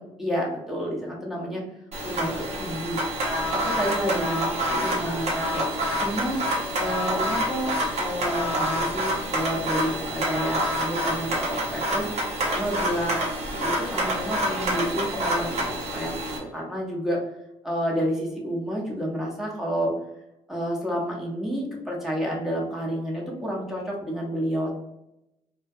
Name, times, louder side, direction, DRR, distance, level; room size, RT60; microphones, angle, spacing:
voice 1, 0.2-1.6 2.0-3.0 3.5-4.6 4.8-6.5 6.8-12.2 12.5-13.2 13.6-16.1 16.5-17.2 17.6-19.9 20.5-24.8, equal, ahead, -4 dB, 0.8 m, -29 dB
sound 1, 1.9-16.4, equal, 60° right, 0.9 m, -27 dB
2.2 x 2.1 x 2.6 m, 0.85 s
supercardioid pair, 70°, 13 cm